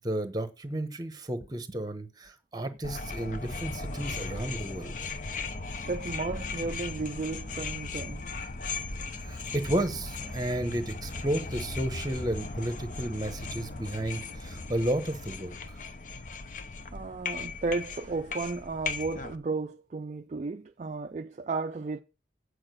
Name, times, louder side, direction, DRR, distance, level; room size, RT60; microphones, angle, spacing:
voice 1, 0.0-4.9 9.2-15.8, right 1 dB, 20° right, 1.0 m, -32 dB
sound 1, 2.8-19.4, left 3 dB, 45° left, 0.8 m, -37 dB
voice 2, 5.9-8.2 16.9-22.0, right 3 dB, 40° right, 0.4 m, -34 dB
8.8 x 4.8 x 6.3 m
head